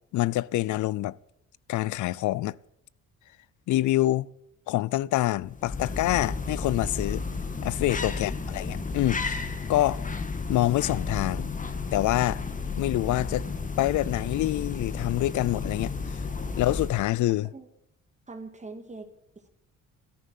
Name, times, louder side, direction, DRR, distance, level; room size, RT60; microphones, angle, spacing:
voice 1, 0.1-1.2 1.7-2.6 3.7-4.3 4.7-7.2 7.6-10.0 10.5-11.5 11.9-12.4 12.8-13.5 13.8-15.9 16.6-17.5, left 15 dB, 75° left, 0.6 m, -26 dB
sound 1, 5.4-17.2, left 4 dB, 25° left, 1.6 m, -32 dB
voice 2, 7.9-8.4 17.5-17.7 18.3-19.5, right 3 dB, 25° right, 2.0 m, -44 dB
13.5 x 13.5 x 7.5 m
cardioid pair, 90°, 30 cm